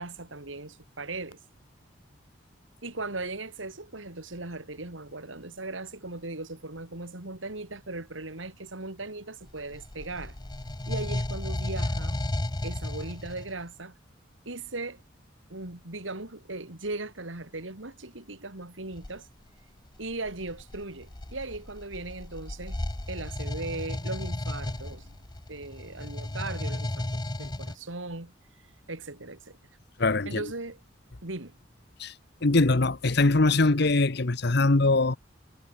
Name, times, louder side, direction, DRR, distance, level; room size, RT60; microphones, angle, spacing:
voice 1, 0.0-1.4 2.8-10.4 10.9-12.2 12.6-13.9 14.4-15.0 15.5-19.3 20.0-25.2 25.5-27.1 27.4-28.3 28.9-29.6 30.2-30.8 31.2-31.6, right 2 dB, 85° right, 3.3 m, -38 dB
sound 1, 9.5-13.6 18.9-19.2 20.0-27.7, left 1 dB, 20° left, 0.8 m, -34 dB
voice 2, 30.0-30.4 32.0-32.1 32.4-35.2, left 2 dB, 60° left, 1.1 m, -22 dB
head